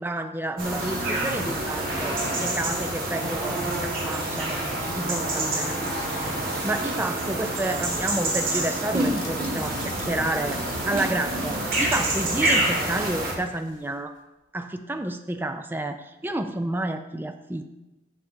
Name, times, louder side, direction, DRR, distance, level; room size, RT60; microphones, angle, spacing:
voice 1, 0.0-4.6 4.9-6.3 6.6-10.6 10.9-14.1 14.5-17.7, right 1 dB, 10° right, 7 dB, 0.3 m, -30 dB
sound 1, 0.6-13.3, right 1 dB, 50° right, 1.8 m, -27 dB
sound 2, 8.9-13.9, left 2 dB, 85° left, 1.0 m, -43 dB
7.2 x 6.3 x 3.7 m, 0.98 s
head